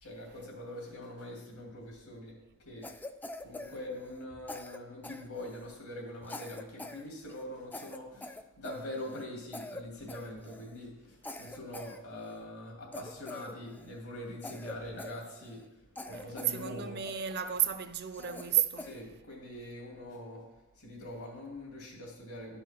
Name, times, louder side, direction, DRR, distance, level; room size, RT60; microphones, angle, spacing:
voice 1, 0.0-2.3 2.6-2.9 3.4-15.6 16.1-17.0 18.8-20.4 20.8-22.6, left 1 dB, 80° left, 2.6 m, -43 dB
Cough, 2.8-4.2 4.5-5.8 6.2-7.0 7.3-7.4 7.7-9.3 9.5-9.8 10.1-10.8 11.2-12.4 12.9-14.0 14.4-15.7 16.0-16.6 17.1-17.6 18.1-19.0, left 2 dB, 10° left, 0.3 m, -45 dB
voice 2, 16.1-18.9, right 11 dB, 50° right, 0.5 m, -32 dB
11.5 x 5.6 x 4.4 m
head